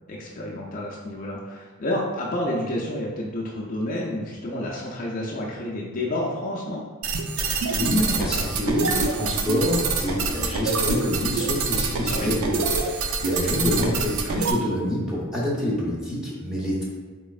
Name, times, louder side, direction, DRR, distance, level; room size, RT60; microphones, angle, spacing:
voice 1, 0.1-6.8 12.1-12.3, left 1 dB, 40° left, -3 dB, 0.4 m, -29 dB
sound 1, 7.0-14.5, right 4 dB, 80° right, 0.4 m, -26 dB
voice 2, 7.8-16.8, left 1 dB, 5° right, -6 dB, 0.7 m, -26 dB
4.1 x 3.0 x 2.4 m, 1.5 s
head